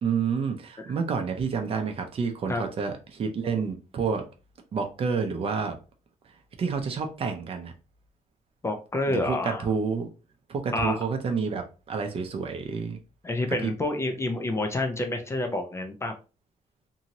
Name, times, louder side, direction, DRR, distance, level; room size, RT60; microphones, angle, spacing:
voice 1, 0.0-4.2 4.7-5.8 6.2-7.7 9.1-10.1 10.5-13.0 13.6-13.7, right 5 dB, 40° right, 0.5 m, -29 dB
voice 2, 8.6-9.7 10.7-11.0 13.2-16.1, left 2 dB, 20° left, 0.4 m, -28 dB
2.7 x 2.6 x 2.9 m
wide cardioid pair, 175°, 14 cm